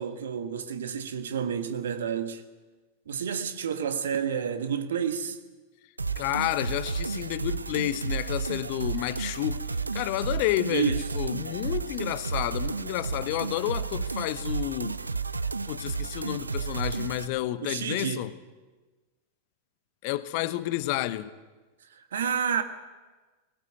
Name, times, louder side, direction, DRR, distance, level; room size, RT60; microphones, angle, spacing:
voice 1, 0.0-2.4 3.1-5.4 10.7-11.0 17.6-18.3 21.9-22.6, right 7 dB, 65° right, 1.6 m, -30 dB
sound 1, 6.0-17.3, right 4 dB, 80° right, 0.6 m, -32 dB
voice 2, 6.2-15.0 15.7-18.3 20.0-21.3, left 16 dB, 45° left, 0.9 m, -30 dB
20.5 x 19.5 x 7.8 m
figure-of-eight pair, 90°, 0 cm